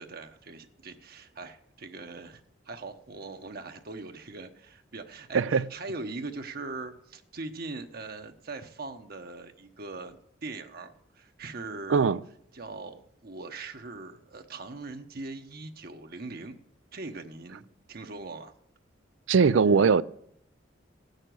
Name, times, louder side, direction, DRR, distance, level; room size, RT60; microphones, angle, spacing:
voice 1, 0.0-12.1 12.5-16.5 16.9-18.5, right 3 dB, 55° right, 6 dB, 1.0 m, -41 dB
voice 2, 19.3-20.0, right 5 dB, 85° right, 17 dB, 0.4 m, -20 dB
16.0 x 6.5 x 9.2 m, 0.72 s
head